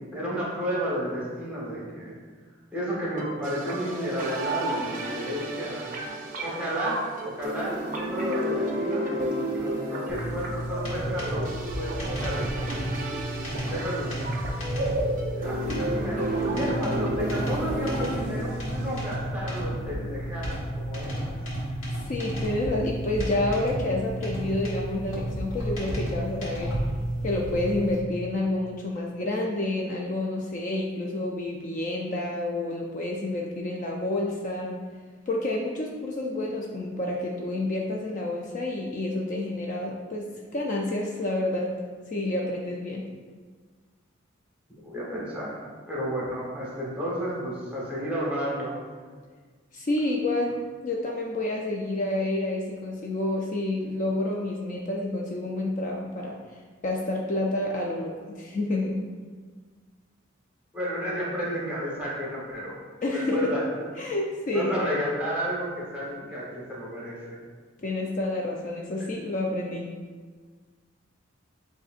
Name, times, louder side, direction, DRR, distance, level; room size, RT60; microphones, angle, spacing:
voice 1, 0.1-2.2 2.7-5.9 6.4-12.5 13.7-14.1 15.3-21.4 44.8-45.6 45.9-48.8 60.7-62.8 63.1-63.9 64.5-67.4, equal, 5° right, -6 dB, 1.0 m, -32 dB
sound 1, 3.2-19.2, right 1 dB, 40° right, 0.5 m, -32 dB
sound 2, 10.1-28.0, right 1 dB, 90° left, 1.4 m, -32 dB
voice 2, 21.9-26.7 27.2-34.8 35.3-41.7 42.1-43.0 49.7-50.6 50.8-59.0 63.0-63.5 64.0-64.9 67.8-69.9, left 2 dB, 40° left, -1 dB, 0.3 m, -29 dB
7.6 x 2.6 x 2.4 m, 1.5 s
head